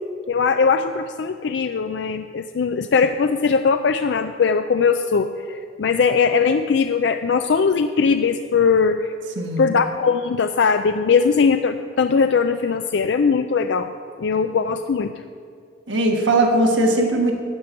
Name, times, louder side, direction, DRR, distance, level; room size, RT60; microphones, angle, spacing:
voice 1, 0.3-9.1 9.6-13.9 14.2-15.1, left 5 dB, 70° left, 8 dB, 0.4 m, -20 dB
voice 2, 9.4-9.7 15.9-17.3, right 1 dB, 85° right, 2 dB, 1.4 m, -19 dB
12.5 x 5.2 x 8.8 m, 2.3 s
head